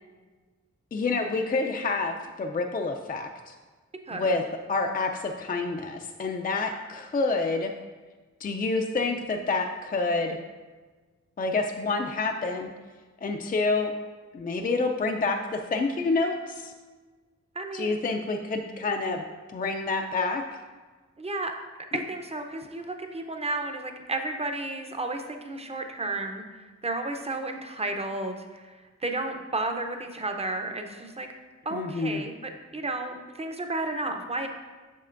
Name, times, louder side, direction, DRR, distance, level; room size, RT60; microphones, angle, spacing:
voice 1, 0.9-3.5 4.1-4.4 4.7-7.7 8.4-10.4 11.4-12.7 13.2-13.9 14.3-16.7 17.7-19.2 19.5-20.4 31.7-32.2, left 3 dB, 30° left, 4 dB, 0.4 m, -28 dB
voice 2, 17.6-18.0 21.2-21.5 21.9-28.7 29.0-31.3 31.7-32.3 32.7-34.5, right 2 dB, 20° right, 5 dB, 0.6 m, -32 dB
7.6 x 6.3 x 2.5 m, 1.3 s
wide cardioid pair, 120°, 29 cm